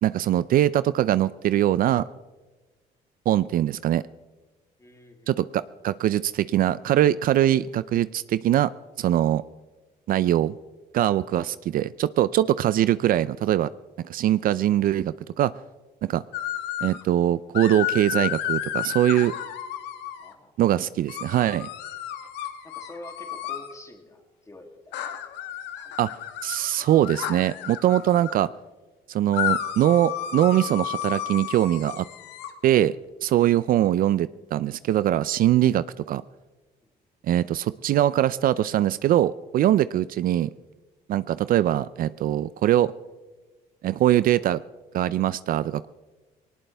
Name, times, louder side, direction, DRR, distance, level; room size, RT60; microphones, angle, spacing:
voice 1, 0.0-2.0 3.3-4.0 5.3-8.7 9.0-9.4 10.1-10.5 10.9-13.7 14.1-15.5 16.0-16.2 16.8-19.3 20.6-21.7 26.0-26.1 26.4-28.5 29.1-32.1 32.6-33.0 33.2-36.2 37.3-40.5 41.1-42.9 43.8-44.6 44.9-45.9, right 12 dB, 55° right, 17 dB, 0.4 m, -22 dB
voice 2, 4.8-5.3 11.3-11.5 20.2-20.6 22.6-25.2 25.8-26.0 33.4-33.5, left 1 dB, 20° left, 3 dB, 2.8 m, -47 dB
sound 1, 16.3-17.0 17.5-20.3 21.1-23.7 24.9-28.4 29.3-32.5, left 10 dB, 85° left, 1.4 m, -32 dB
20.0 x 18.5 x 3.4 m, 1.2 s
cardioid pair, 110°, 17 cm